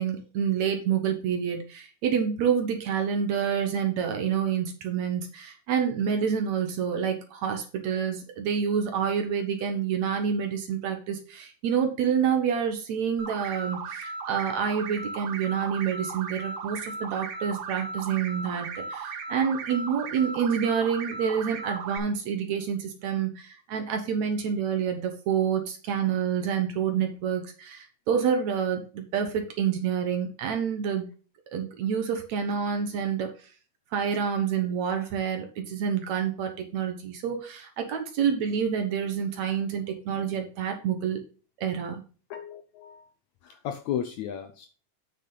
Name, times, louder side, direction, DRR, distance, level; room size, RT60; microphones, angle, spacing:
voice 1, 0.0-31.1 31.5-33.3 33.9-41.2 41.6-42.0, right 7 dB, 60° right, 5 dB, 2.3 m, -28 dB
sound 1, 13.2-22.0, right 4 dB, 85° right, 2.8 m, -36 dB
voice 2, 42.3-43.1 43.4-44.7, left 9 dB, 75° left, 7 dB, 1.8 m, -34 dB
8.4 x 6.2 x 3.9 m, 0.37 s
omnidirectional pair, 4.0 m